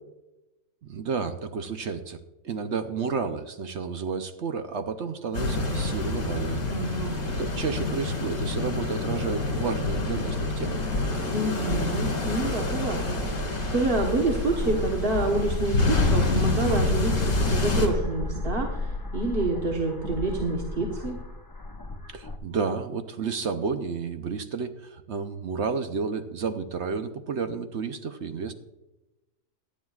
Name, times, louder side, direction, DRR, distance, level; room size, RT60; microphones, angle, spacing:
voice 1, 0.8-2.2 2.4-6.6 7.4-10.8 11.1-11.2 22.1-28.5, right 5 dB, 55° right, 8 dB, 0.8 m, -31 dB
sound 1, 5.3-17.9, left 2 dB, 55° left, 3.3 m, -27 dB
voice 2, 6.7-7.2 11.3-21.2, right 2 dB, 40° right, 0 dB, 1.3 m, -28 dB
sound 2, 13.9-22.4, left 2 dB, 30° left, 0.3 m, -34 dB
17.5 x 11.5 x 2.4 m, 1.0 s
omnidirectional pair, 1.7 m